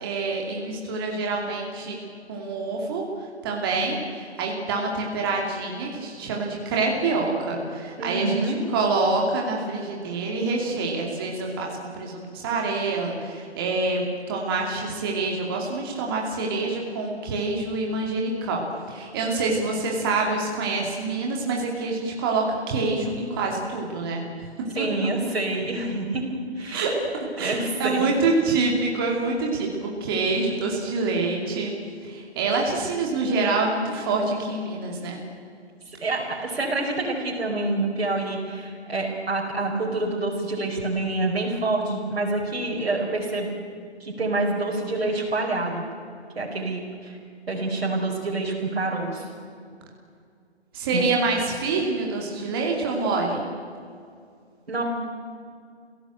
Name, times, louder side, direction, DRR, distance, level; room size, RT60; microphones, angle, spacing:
voice 1, 0.0-2.0 2.3-3.0 3.4-8.4 8.7-24.2 26.7-26.9 27.4-31.7 32.0-35.2 50.7-53.4, right 3 dB, 20° right, -1 dB, 2.7 m, -26 dB
voice 2, 8.0-8.6 24.7-26.3 26.6-27.0 27.4-28.1 35.9-43.5 44.0-45.8 46.3-47.2 47.5-49.3 50.9-51.0 54.7-54.8, right 2 dB, 65° right, -2 dB, 5.0 m, -27 dB
28.0 x 17.0 x 9.1 m, 2.3 s
figure-of-eight pair, 155°, 33 cm